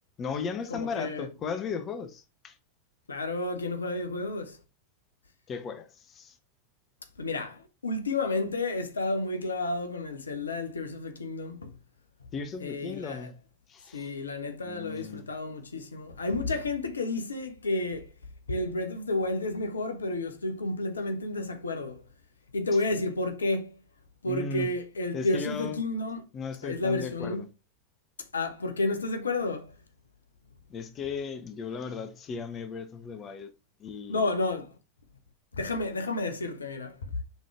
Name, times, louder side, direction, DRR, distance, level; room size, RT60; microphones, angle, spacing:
voice 1, 0.2-2.6 5.5-6.4 12.3-13.3 13.7-14.1 14.6-15.3 24.2-24.7 25.1-25.8 26.3-27.5 30.7-33.5 33.8-34.2, left 5 dB, 25° left, 0.7 m, -36 dB
voice 2, 0.7-1.3 3.1-4.6 7.2-11.7 12.6-13.3 13.9-18.1 18.5-22.0 22.5-23.7 24.2-26.3 26.6-27.4 28.3-29.7 34.1-34.7 35.5-37.0, left 2 dB, 75° left, 0.9 m, -31 dB
5.2 x 3.8 x 4.8 m
figure-of-eight pair, 90°, 0 cm